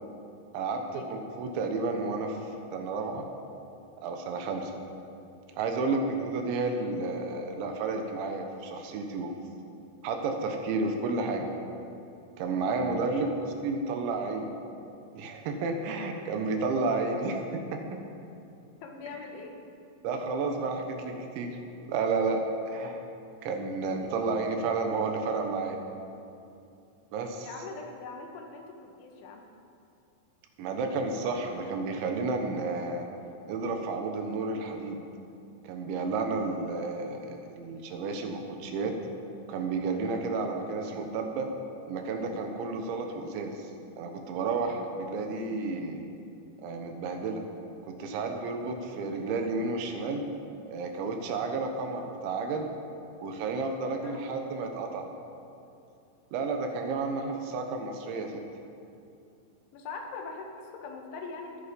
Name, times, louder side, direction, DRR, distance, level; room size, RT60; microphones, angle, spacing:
voice 1, 0.5-3.3 4.0-4.7 5.6-9.3 10.0-11.5 12.4-14.5 15.1-18.0 20.0-21.6 21.9-23.0 23.4-25.8 27.1-27.5 30.6-33.1 33.5-35.0 35.6-38.9 39.5-41.5 41.9-43.7 44.0-46.0 46.6-47.4 47.9-50.3 50.7-52.7 53.2-55.1 56.3-58.4, right 3 dB, 75° right, 4 dB, 3.4 m, -31 dB
voice 2, 12.8-13.3 18.8-19.5 27.4-29.5 53.9-54.4 59.7-61.6, left 4 dB, 80° left, 2 dB, 3.8 m, -42 dB
21.0 x 9.4 x 5.3 m, 2.6 s
omnidirectional pair, 5.5 m